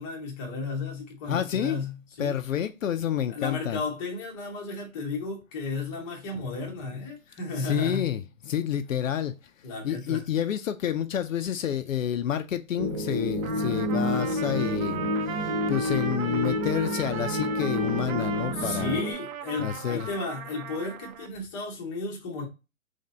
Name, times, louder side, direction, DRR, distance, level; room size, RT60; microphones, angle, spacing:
voice 1, 0.0-2.4 3.3-8.1 9.6-10.2 18.5-22.5, left 3 dB, 15° left, 0.7 m, -34 dB
voice 2, 1.3-1.8 2.2-3.8 6.4-6.5 7.5-9.4 9.8-19.0 19.6-20.1, left 9 dB, 65° left, 0.5 m, -29 dB
sound 1, 12.8-19.1, left 1 dB, 30° right, 0.4 m, -29 dB
Trumpet, 13.4-21.3, right 8 dB, 70° right, 0.6 m, -37 dB
3.2 x 2.7 x 4.0 m
hypercardioid pair, 145°, 42 cm